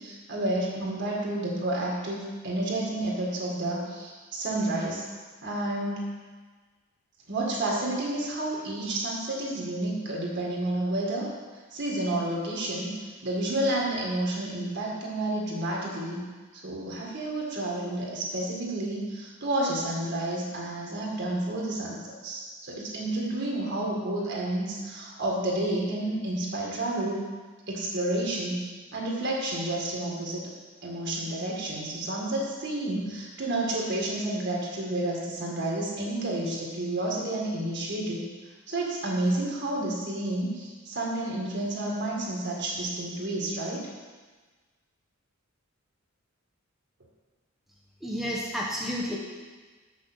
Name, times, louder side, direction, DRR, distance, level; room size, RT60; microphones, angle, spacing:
voice 1, 0.0-5.0 5.4-6.1 7.3-11.3 11.7-12.9 13.2-16.2 16.5-27.2 27.7-28.6 28.9-30.5 30.8-38.3 38.7-43.9, right 1 dB, 55° right, -3 dB, 1.9 m, -30 dB
voice 2, 48.0-49.2, equal, ahead, -4 dB, 0.8 m, -31 dB
7.1 x 6.3 x 6.2 m, 1.4 s
head